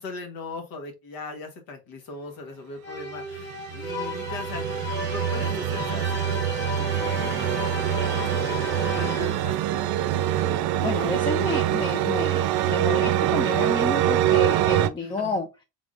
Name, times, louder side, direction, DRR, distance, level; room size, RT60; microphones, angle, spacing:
voice 1, 0.0-9.9 15.0-15.4, left 3 dB, 70° left, 4 dB, 1.3 m, -40 dB
sound 1, 2.8-9.7, equal, 30° left, 1.2 m, -32 dB
sound 2, 3.3-14.9, right 12 dB, 85° right, 0.6 m, -25 dB
sound 3, 6.9-12.0, right 4 dB, 15° right, 0.8 m, -42 dB
voice 2, 10.8-15.5, left 3 dB, 15° left, 4 dB, 0.3 m, -30 dB
3.7 x 3.5 x 2.4 m, 0.26 s
cardioid pair, 140°, 37 cm